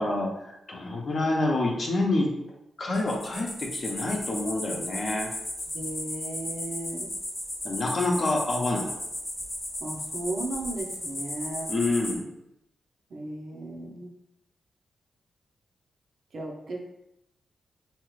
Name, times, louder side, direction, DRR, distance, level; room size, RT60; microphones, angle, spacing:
voice 1, 0.0-2.4 2.8-5.3 7.6-8.9 11.7-12.3, left 2 dB, 50° left, -1 dB, 0.7 m, -27 dB
sound 1, 2.9-12.1, left 1 dB, 15° left, 0.9 m, -35 dB
voice 2, 5.7-7.1 9.8-11.7 13.1-14.1 16.3-16.9, right 2 dB, 60° right, 0 dB, 0.6 m, -35 dB
2.9 x 2.4 x 3.1 m, 0.82 s
cardioid pair, 90°, 0 cm